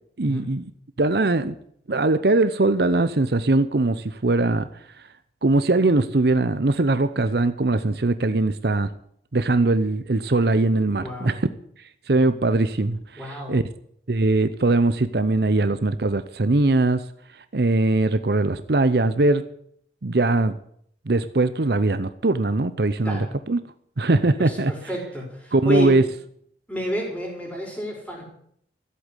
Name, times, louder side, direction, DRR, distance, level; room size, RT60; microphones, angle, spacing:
voice 1, 0.2-0.7 1.0-1.5 1.9-4.7 5.4-8.9 9.3-11.4 12.1-13.6 14.1-17.0 17.5-19.4 20.0-20.6 21.1-23.6 24.0-24.7 25.5-26.0, right 2 dB, 60° right, 12 dB, 0.7 m, -21 dB
voice 2, 11.0-11.3 13.2-13.6 23.0-23.3 24.4-25.9 26.7-28.2, equal, 5° left, -1 dB, 5.2 m, -29 dB
14.5 x 8.2 x 9.8 m, 0.67 s
head